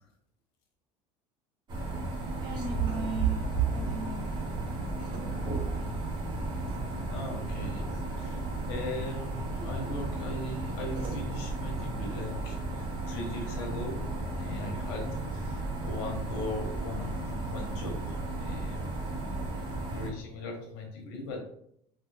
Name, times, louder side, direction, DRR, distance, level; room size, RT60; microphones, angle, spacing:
sound 1, 1.7-20.1, right 3 dB, 35° right, 0.9 m, -34 dB
voice 1, 2.4-4.7 5.1-6.0, right 3 dB, 75° right, -1 dB, 1.2 m, -40 dB
sound 2, 6.4-15.7, right 1 dB, ahead, 0.6 m, -50 dB
voice 2, 6.8-14.1 14.4-19.2 19.8-21.4, left 2 dB, 90° left, 1 dB, 1.0 m, -39 dB
3.5 x 2.4 x 2.7 m, 0.69 s
cardioid pair, 145°, 13 cm